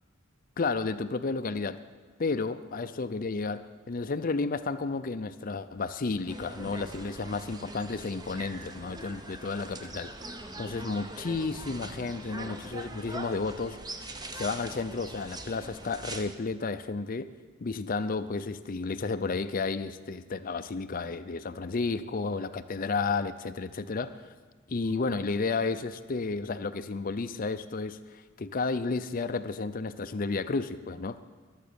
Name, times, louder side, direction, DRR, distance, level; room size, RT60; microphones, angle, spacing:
voice 1, 0.6-1.8 2.2-10.1 10.6-14.0 14.3-17.3 17.6-24.2 24.7-31.2, left 4 dB, 40° left, 11 dB, 0.5 m, -32 dB
sound 1, 6.3-16.4, right 2 dB, 20° right, 0.8 m, -42 dB
22.0 x 7.5 x 6.9 m, 1.4 s
head